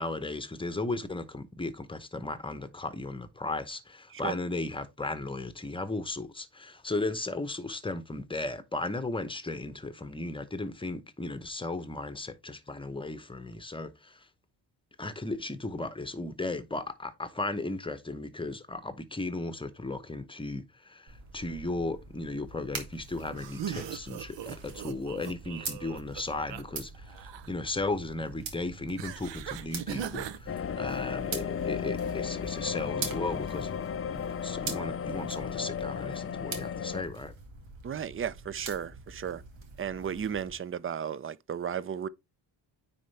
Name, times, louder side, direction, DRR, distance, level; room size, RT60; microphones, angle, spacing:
voice 1, 0.0-14.3 15.0-33.7 34.1-37.3, left 2 dB, 10° left, 0.8 m, -36 dB
sound 1, 21.1-40.5, right 5 dB, 90° right, 2.1 m, -44 dB
sound 2, 23.4-26.6 26.9-27.5 29.0-30.4, right 9 dB, 70° right, 0.8 m, -39 dB
sound 3, 30.5-37.0, left 7 dB, 30° left, 0.4 m, -34 dB
voice 2, 37.8-39.4 39.8-42.1, right 8 dB, 30° right, 0.4 m, -34 dB
9.5 x 4.3 x 3.3 m
cardioid pair, 115°, 45 cm